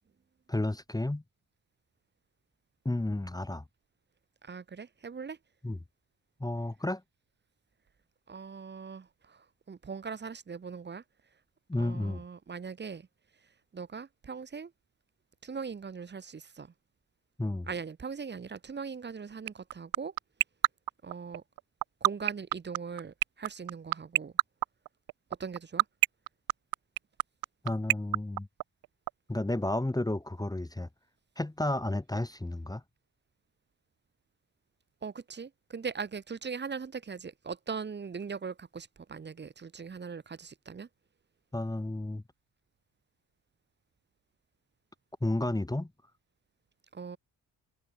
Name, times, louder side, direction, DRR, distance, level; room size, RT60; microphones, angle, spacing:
voice 1, 0.5-1.2 2.8-3.6 5.6-5.8 6.4-7.0 11.7-12.2 17.4-17.7 27.6-28.5 29.3-30.9 31.4-32.8 41.5-42.2 45.2-45.9, left 1 dB, 10° left, 1.0 m, -32 dB
voice 2, 4.4-5.4 8.3-11.0 11.8-13.1 13.7-14.7 15.4-16.7 17.7-20.1 21.0-21.4 22.0-24.3 25.4-25.8 35.0-40.9 46.9-47.2, right 5 dB, 25° right, 0.7 m, -40 dB
sound 1, 19.5-29.1, right 15 dB, 60° right, 0.5 m, -24 dB
cardioid pair, 80°, 40 cm